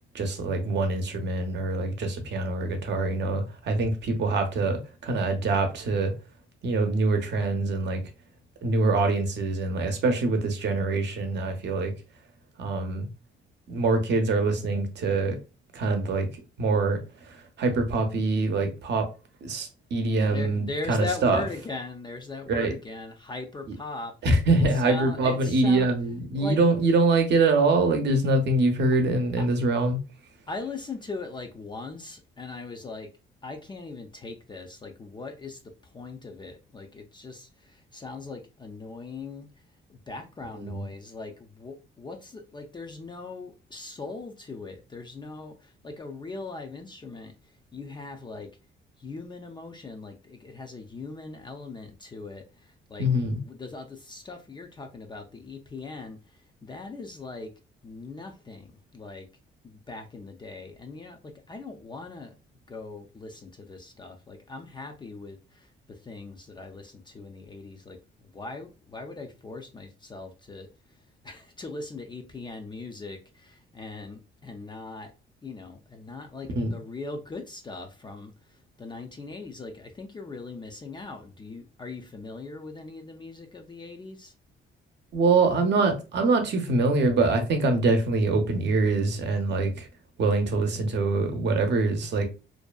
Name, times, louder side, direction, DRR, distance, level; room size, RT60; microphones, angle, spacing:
voice 1, 0.1-6.1 6.6-8.0 8.6-11.9 12.6-13.1 13.7-15.4 15.7-16.3 16.6-19.0 19.4-21.4 22.5-22.7 23.7-23.8 24.2-30.0 40.6-40.8 53.0-53.4 76.5-76.8 85.1-89.9 90.2-92.3, right 3 dB, 60° right, 0.7 m, -24 dB
voice 2, 20.3-24.1 24.8-25.9 26.3-26.6 29.4-29.5 30.5-33.1 33.4-39.5 39.9-47.3 47.7-48.5 49.0-53.1 53.4-57.5 57.8-59.3 59.6-62.3 62.7-70.7 71.2-75.1 75.4-84.3, left 3 dB, 25° left, 0.4 m, -40 dB
2.6 x 2.2 x 2.2 m
cardioid pair, 90°, 20 cm